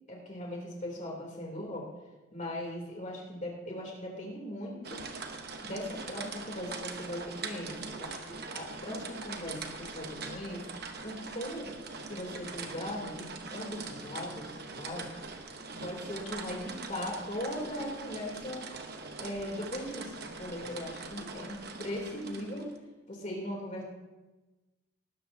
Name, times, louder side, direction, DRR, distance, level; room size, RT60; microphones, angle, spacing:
voice 1, 0.1-1.9 2.3-5.0 5.6-10.6 11.0-11.7 12.1-15.1 15.7-18.7 19.2-22.7 23.1-23.8, left 1 dB, 35° left, -1 dB, 3.1 m, -39 dB
sound 1, 4.8-22.8, right 4 dB, 50° right, 1.1 m, -42 dB
19.0 x 12.5 x 2.8 m, 1.1 s
head